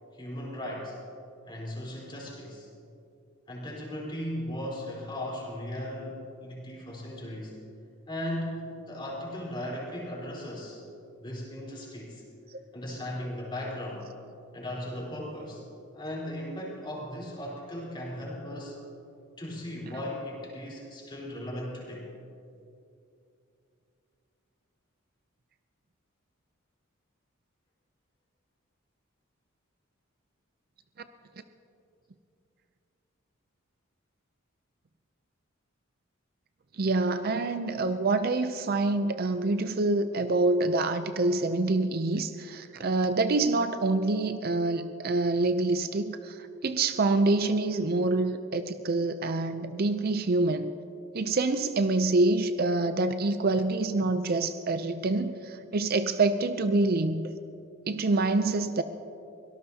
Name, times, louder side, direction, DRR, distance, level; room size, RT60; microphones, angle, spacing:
voice 1, 0.1-1.0 1.5-2.7 3.5-7.6 8.1-10.8 11.2-12.2 12.7-14.1 14.5-15.6 15.9-18.8 19.4-22.1, left 1 dB, 25° left, -4 dB, 4.1 m, -37 dB
voice 2, 36.8-50.7 51.1-57.3 57.9-58.8, right 2 dB, 45° right, 10 dB, 0.5 m, -26 dB
24.0 x 18.0 x 2.8 m, 2.7 s
head